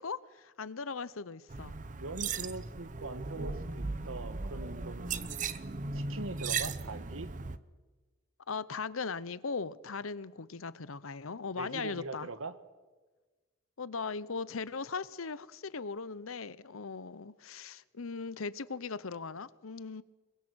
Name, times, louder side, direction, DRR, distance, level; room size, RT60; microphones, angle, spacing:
voice 1, 0.0-1.7 8.5-12.3 13.8-20.0, left 4 dB, 85° left, 0.8 m, -39 dB
sound 1, 1.5-7.6, right 4 dB, 40° right, 0.7 m, -37 dB
voice 2, 2.0-5.3 5.9-7.3 11.6-12.5, right 3 dB, 80° right, 1.4 m, -42 dB
27.5 x 22.5 x 6.3 m
head